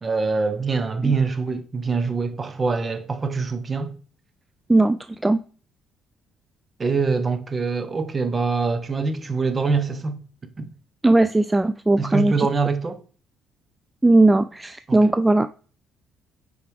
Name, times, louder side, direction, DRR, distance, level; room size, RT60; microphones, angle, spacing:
voice 1, 0.0-3.9 6.8-10.2 10.6-10.7 12.0-13.0 14.9-15.1, right 4 dB, 35° right, 1.0 m, -24 dB
voice 2, 4.7-5.4 11.0-12.5 14.0-15.6, right 2 dB, 15° right, 0.3 m, -18 dB
8.8 x 4.8 x 3.5 m
supercardioid pair, 60°, 0 cm